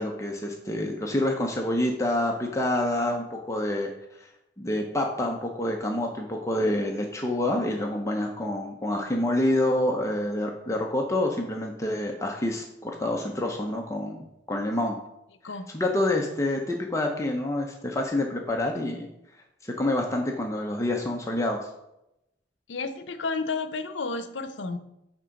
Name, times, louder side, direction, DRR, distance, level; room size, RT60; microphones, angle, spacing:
voice 1, 0.0-3.9 4.2-4.3 4.6-15.0 15.7-19.1 19.6-21.7, left 1 dB, 15° left, 1 dB, 0.7 m, -27 dB
voice 2, 22.7-24.8, left 4 dB, 80° left, 10 dB, 0.7 m, -31 dB
8.9 x 3.7 x 5.1 m, 0.85 s
head